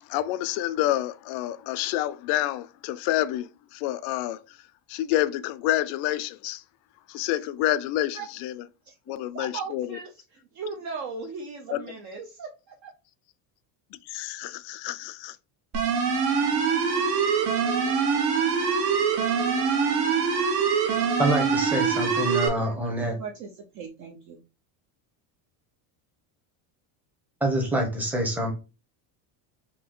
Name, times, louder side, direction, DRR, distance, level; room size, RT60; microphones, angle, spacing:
voice 1, 0.1-4.4 4.9-6.6 7.1-8.6 9.1-10.0 11.7-11.9 14.1-15.4, left 14 dB, 65° left, 0.5 m, -28 dB
voice 2, 8.9-12.9 22.6-24.4, right 5 dB, 40° right, 0.5 m, -38 dB
sound 1, 15.7-22.5, right 6 dB, 55° right, 1.2 m, -24 dB
voice 3, 21.2-23.1 27.4-28.5, right 1 dB, 5° right, 0.8 m, -26 dB
3.8 x 2.8 x 3.8 m
cardioid pair, 170°, 46 cm